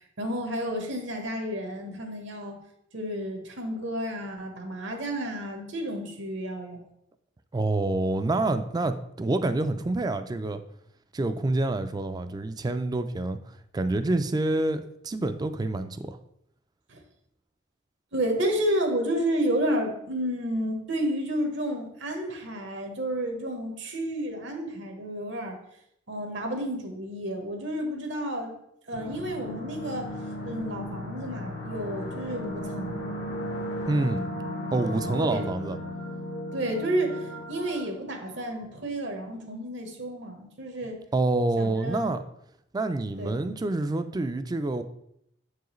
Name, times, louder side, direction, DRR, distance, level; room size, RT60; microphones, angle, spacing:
voice 1, 0.2-2.6 2.9-6.8 16.9-17.0 18.1-25.6 26.1-28.5 28.9-30.1 30.4-33.1 35.2-35.5 36.5-41.0 41.6-42.2 43.2-43.6, right 1 dB, 75° right, 1.1 m, -31 dB
voice 2, 7.5-10.6 11.1-13.4 13.7-16.2 33.9-34.2 34.7-35.8 41.1-42.2 42.7-44.8, right 2 dB, 20° right, 0.3 m, -27 dB
sound 1, 28.9-38.7, left 1 dB, 90° left, 1.4 m, -36 dB
7.1 x 4.7 x 3.1 m
head